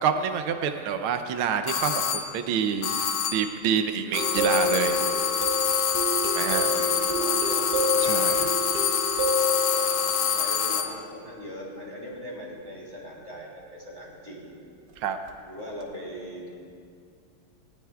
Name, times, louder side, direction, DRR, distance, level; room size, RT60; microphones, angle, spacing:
voice 1, 0.0-2.9 3.3-5.0 6.2-6.7 8.0-8.5 15.0-15.2, right 7 dB, 80° right, 7 dB, 1.6 m, -27 dB
sound 1, 1.7-2.4 2.8-3.6 4.1-11.0, left 7 dB, 80° left, 1.7 m, -26 dB
sound 2, 4.1-11.0 15.3-15.4 15.8-15.9, left 1 dB, 55° right, 1.6 m, -28 dB
voice 2, 6.4-8.4 9.6-14.5 15.4-16.5, equal, 20° right, -4 dB, 3.6 m, -40 dB
19.5 x 19.5 x 2.4 m, 2.3 s
omnidirectional pair, 2.3 m